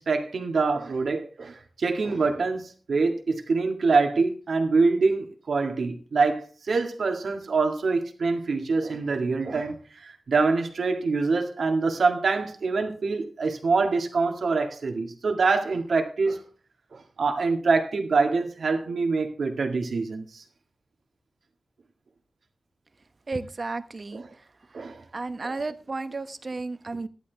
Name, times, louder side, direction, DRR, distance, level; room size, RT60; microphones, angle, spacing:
voice 1, 0.0-16.4 16.9-20.4 24.1-24.3 24.7-25.0 25.4-25.5, right 4 dB, 85° right, 1.9 m, -25 dB
voice 2, 23.3-24.2 25.1-27.1, right 3 dB, 50° right, 1.0 m, -33 dB
14.5 x 11.5 x 3.5 m
cardioid pair, 60°, 0 cm